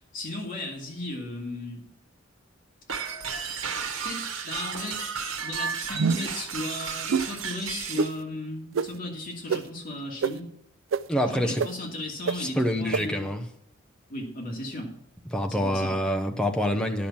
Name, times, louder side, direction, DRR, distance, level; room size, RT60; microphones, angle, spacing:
voice 1, 0.1-1.8 4.0-5.0 5.4-10.5 11.4-13.3 14.1-14.9 15.5-15.9, left 1 dB, 40° left, -1 dB, 2.5 m, -36 dB
sound 1, 2.9-8.1, right 6 dB, 90° right, 1.3 m, -33 dB
sound 2, 5.9-6.4 7.1-7.3 8.0-8.1 8.7-8.9 9.5-9.6 10.2-10.3 10.9-11.0 11.6-11.7 12.3-12.4 12.9-13.0, right 5 dB, 70° right, 0.4 m, -24 dB
voice 2, 11.1-11.6 12.3-13.4 15.3-17.1, equal, 5° left, 3 dB, 0.8 m, -26 dB
10.5 x 5.9 x 7.2 m, 0.75 s
head